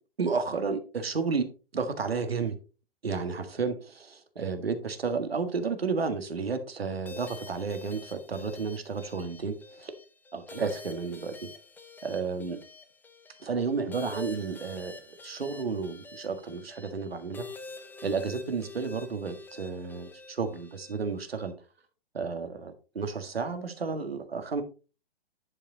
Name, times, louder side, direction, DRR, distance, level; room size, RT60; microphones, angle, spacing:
voice 1, 0.2-1.5 1.7-2.6 3.0-9.9 10.3-11.5 12.0-12.6 13.4-17.4 18.0-21.5 22.1-24.6, right 5 dB, 80° right, 9 dB, 1.7 m, -32 dB
sound 1, 7.1-21.5, left 3 dB, 5° left, 0.8 m, -47 dB
10.5 x 5.1 x 3.9 m, 0.33 s
figure-of-eight pair, 120°, 30 cm